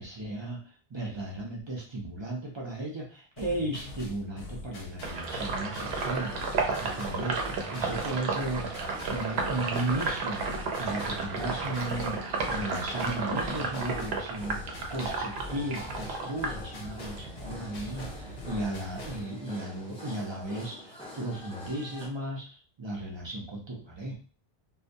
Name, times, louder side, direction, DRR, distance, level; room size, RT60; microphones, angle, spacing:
voice 1, 0.0-7.4 7.7-8.7 9.1-10.4 10.8-14.6 14.9-24.1, right 2 dB, 35° right, -2 dB, 0.5 m, -35 dB
sound 1, 3.4-19.3, left 2 dB, 75° left, 0.8 m, -43 dB
sound 2, 5.0-22.1, left 1 dB, 5° left, 0.6 m, -46 dB
Sink (filling or washing), 5.0-17.3 17.6-19.1, right 4 dB, 85° right, 0.8 m, -33 dB
2.2 x 2.2 x 2.6 m, 0.38 s
omnidirectional pair, 1.0 m